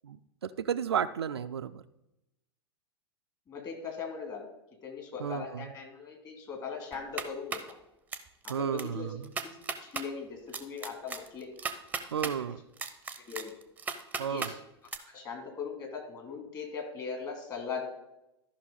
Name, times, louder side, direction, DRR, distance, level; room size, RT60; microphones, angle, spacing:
voice 1, 0.0-1.8 5.2-5.7 8.5-9.3 12.1-12.6 14.2-14.5, right 8 dB, 70° right, 11 dB, 0.4 m, -33 dB
voice 2, 3.5-4.5 4.8-7.8 8.4-9.6 9.8-11.5 13.1-13.5 14.3-14.6 15.1-17.8, left 5 dB, 25° left, 3 dB, 2.2 m, -40 dB
sound 1, 6.9-7.7 8.1-8.5 8.8-8.9 9.2-10.1 10.5-12.3 12.8-14.5 14.9-15.0, right 5 dB, 10° right, 0.7 m, -36 dB
13.0 x 5.7 x 3.9 m, 0.89 s
figure-of-eight pair, 90°, 14 cm